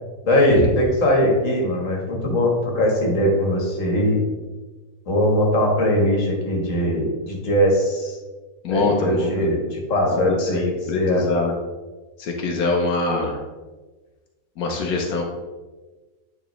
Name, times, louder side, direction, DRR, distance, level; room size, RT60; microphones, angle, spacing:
voice 1, 0.2-4.2 5.1-8.2 8.7-11.3, equal, 60° left, 0 dB, 1.7 m, -20 dB
voice 2, 8.6-9.7 10.1-11.5 12.2-13.4 14.6-15.2, left 3 dB, 90° left, 0 dB, 1.3 m, -24 dB
9.1 x 4.1 x 3.1 m, 1.3 s
omnidirectional pair, 1.5 m